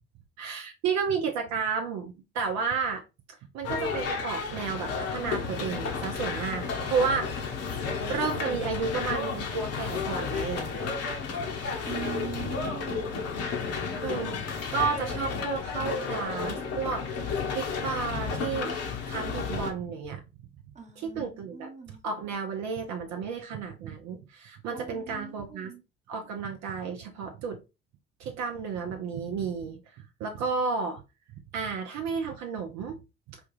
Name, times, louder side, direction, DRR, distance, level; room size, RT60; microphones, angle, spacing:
voice 1, 0.4-3.0 3.3-7.5 8.1-10.7 14.0-18.8 19.1-20.2 21.0-25.7 26.1-27.6 28.2-31.0 31.5-33.0 33.3-33.4, right 5 dB, 60° right, 0.7 m, -32 dB
sound 1, 3.6-19.7, left 5 dB, 50° left, 1.0 m, -32 dB
voice 2, 11.9-13.1 15.1-16.3 20.7-22.0 24.7-25.8, right 6 dB, 20° right, 1.0 m, -42 dB
4.3 x 2.3 x 3.1 m
hypercardioid pair, 55°, 32 cm